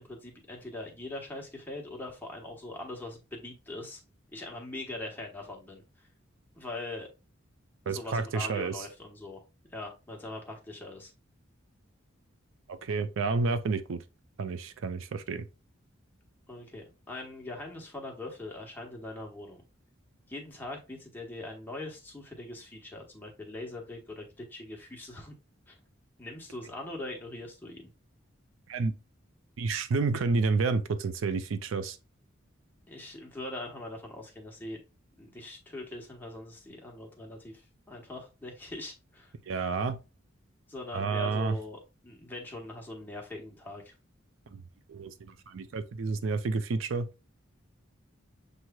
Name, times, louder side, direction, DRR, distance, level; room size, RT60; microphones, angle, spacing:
voice 1, 0.0-4.0 4.3-6.1 6.6-7.1 7.9-9.4 9.7-11.1 16.5-19.6 20.3-25.3 25.7-25.8 26.2-27.9 32.9-34.8 35.2-39.3 40.7-43.9, left 2 dB, 10° left, 1.0 m, -42 dB
voice 2, 7.9-8.8 12.7-14.0 14.4-15.5 28.7-28.9 29.6-32.0 39.5-40.0 40.9-41.6 44.5-44.6 44.9-47.1, right 4 dB, 75° right, 0.4 m, -30 dB
6.7 x 3.1 x 2.2 m
head